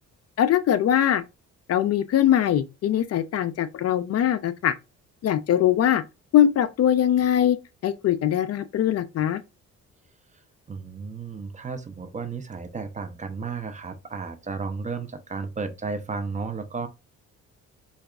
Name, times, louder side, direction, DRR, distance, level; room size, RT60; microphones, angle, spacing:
voice 1, 0.4-1.2 1.7-4.7 5.2-6.0 6.3-7.6 7.8-9.4, left 10 dB, 55° left, 0.4 m, -21 dB
voice 2, 10.7-16.9, right 4 dB, 25° right, 0.5 m, -33 dB
4.6 x 2.3 x 2.3 m
cardioid pair, 90°, 30 cm